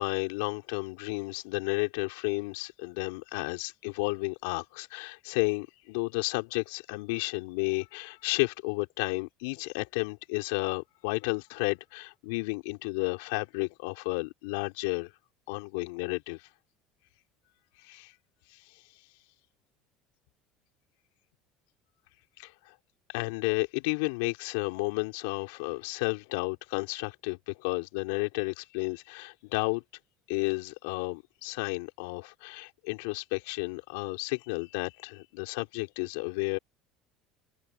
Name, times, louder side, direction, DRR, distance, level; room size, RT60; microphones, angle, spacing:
voice 1, 0.0-15.1 15.5-16.4 17.8-18.1 18.5-18.6 22.4-22.7 23.1-29.8 30.3-36.6, left 28 dB, 75° left, 3.9 m, -32 dB
open air
hypercardioid pair, 75°, 0 cm